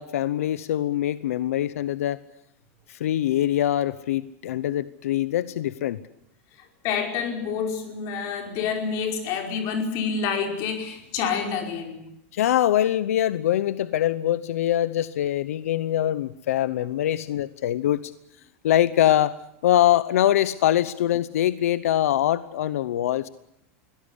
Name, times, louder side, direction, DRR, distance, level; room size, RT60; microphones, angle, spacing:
voice 1, 0.0-2.2 2.9-6.0 12.3-18.1 18.6-19.3 19.6-23.3, left 12 dB, 90° left, 16 dB, 0.8 m, -23 dB
voice 2, 6.5-12.0, left 6 dB, 45° left, 4 dB, 5.2 m, -28 dB
23.0 x 17.0 x 9.8 m, 0.82 s
supercardioid pair, 155°, 8 cm